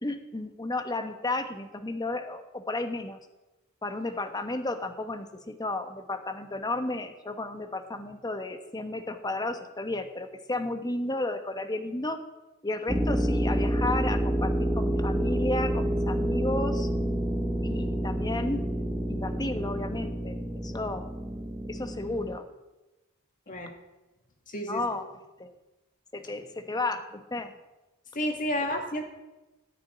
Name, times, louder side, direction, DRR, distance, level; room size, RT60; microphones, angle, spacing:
voice 1, 0.0-3.2 3.8-12.2 12.6-16.9 17.6-18.6 19.1-21.1 21.7-22.5 23.5-23.6 24.7-25.0 25.4-25.5 26.1-27.5, left 2 dB, 20° left, 8 dB, 1.0 m, -33 dB
sound 1, 12.9-22.4, equal, 5° right, 0.7 m, -28 dB
voice 2, 24.5-24.9 28.1-29.0, equal, 40° left, 3 dB, 2.1 m, -30 dB
14.5 x 6.1 x 9.6 m, 1.1 s
head